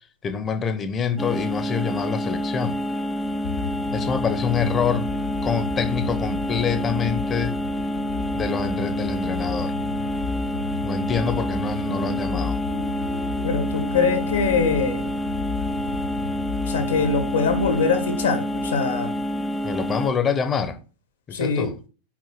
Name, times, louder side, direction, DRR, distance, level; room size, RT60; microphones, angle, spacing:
voice 1, 0.2-2.8 3.9-5.1 5.4-7.6 8.3-9.7 10.8-12.6 19.6-20.8 21.3-21.7, left 6 dB, 25° left, 1.0 m, -26 dB
sound 1, 1.2-20.1, equal, 10° left, 0.5 m, -28 dB
sound 2, 3.2-18.8 19.6-19.7, left 6 dB, 50° left, 0.9 m, -34 dB
voice 2, 13.4-15.1 16.7-19.2 21.3-21.7, left 5 dB, 70° left, 2.2 m, -23 dB
6.0 x 5.3 x 6.5 m
figure-of-eight pair, 90°, 0 cm